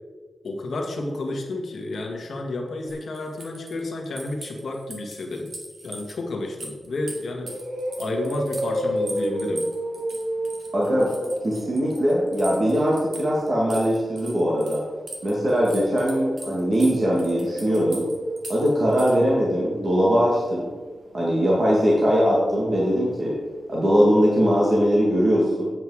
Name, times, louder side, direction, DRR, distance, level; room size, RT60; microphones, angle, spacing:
voice 1, 0.4-5.5 5.8-7.5 8.0-9.7, left 2 dB, 60° left, 1 dB, 1.6 m, -31 dB
sound 1, 2.9-6.1 6.5-14.8 15.1-19.2, right 2 dB, 50° right, 1.9 m, -40 dB
sound 2, 7.0-7.1 7.4-13.3 15.4-23.5 23.7-23.8 24.2-24.3, right 1 dB, 75° right, 1.5 m, -33 dB
voice 2, 10.7-11.1 11.4-14.8 15.2-18.0 18.5-20.7 21.1-23.4 23.7-25.7, equal, 35° right, -5 dB, 1.9 m, -21 dB
8.8 x 7.8 x 4.8 m, 1.4 s
wide cardioid pair, 165°, 0 cm